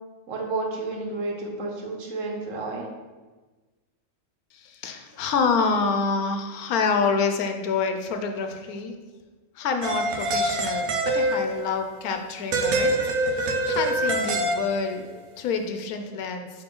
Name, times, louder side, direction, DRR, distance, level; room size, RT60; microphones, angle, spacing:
voice 1, 0.3-2.9, right 3 dB, 65° right, 1 dB, 1.3 m, -31 dB
voice 2, 4.8-9.0 9.6-12.9 13.3-16.5, left 5 dB, 85° left, 6 dB, 1.2 m, -27 dB
sound 1, 9.8-11.8 12.5-15.0, right 1 dB, 80° right, 1.2 m, -25 dB
9.2 x 3.1 x 3.8 m, 1.3 s
omnidirectional pair, 1.5 m